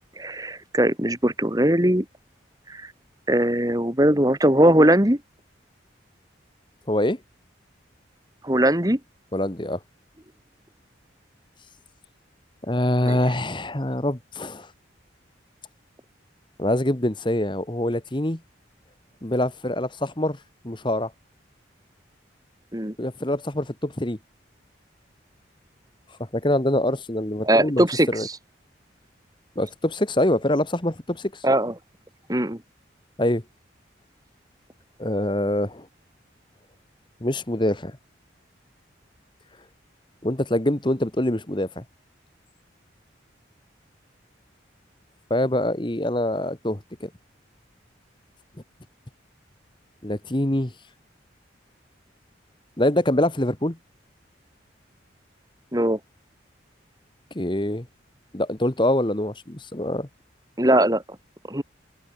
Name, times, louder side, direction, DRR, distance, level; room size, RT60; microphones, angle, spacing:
voice 1, 0.2-2.0 2.7-2.9 3.3-5.2 8.4-9.0 13.0-13.2 22.7-22.9 27.4-28.3 31.4-31.7 32.3-32.6 55.7-56.0 60.6-61.0 61.5-61.6, right 1 dB, 20° right, 2.5 m, -20 dB
voice 2, 6.9-7.2 9.3-9.8 12.7-14.7 16.6-18.4 19.2-20.4 20.6-21.1 23.0-24.2 26.3-28.3 29.5-31.3 33.2-33.4 35.0-35.9 37.2-37.9 40.2-41.8 45.3-47.1 50.0-50.7 52.8-53.8 57.3-57.9 58.3-60.1, left 1 dB, 25° left, 1.4 m, -24 dB
open air
head